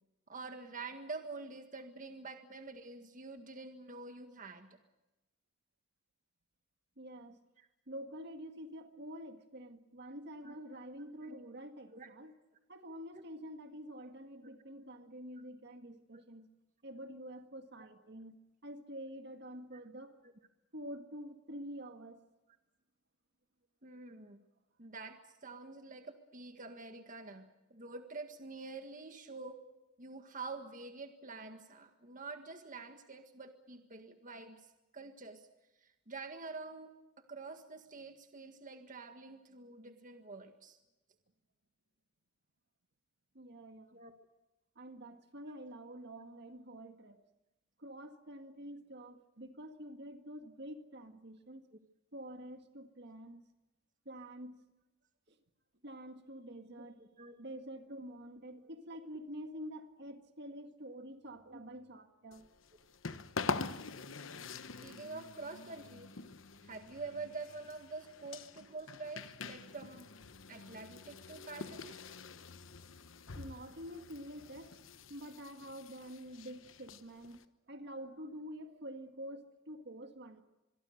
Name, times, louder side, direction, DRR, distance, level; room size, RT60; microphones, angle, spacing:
voice 1, 0.3-4.8 7.6-7.7 10.4-10.6 11.2-11.4 11.9-12.1 13.1-13.2 16.1-16.2 17.8-17.9 19.7-19.8 20.2-20.3 23.8-24.4 24.8-29.6 30.0-34.7 34.9-35.4 35.8-36.9 37.3-40.8 43.9-44.1 51.7-51.8 56.4-57.4 57.9-58.0 58.6-58.8 61.4-61.6 64.8-66.1 66.6-70.1 70.5-72.0, right 3 dB, 40° right, 6 dB, 1.7 m, -47 dB
voice 2, 7.0-7.4 7.9-12.3 12.7-16.5 16.8-18.4 18.6-20.2 20.7-22.2 43.3-44.0 44.8-47.2 47.8-51.7 52.1-53.4 54.1-54.6 55.8-57.0 57.4-62.5 73.4-74.8 75.1-77.4 77.7-80.4, equal, 60° right, 7 dB, 1.9 m, -47 dB
sound 1, 62.3-77.4, left 4 dB, 80° left, 1.1 m, -45 dB
25.5 x 22.5 x 6.6 m, 1.0 s
head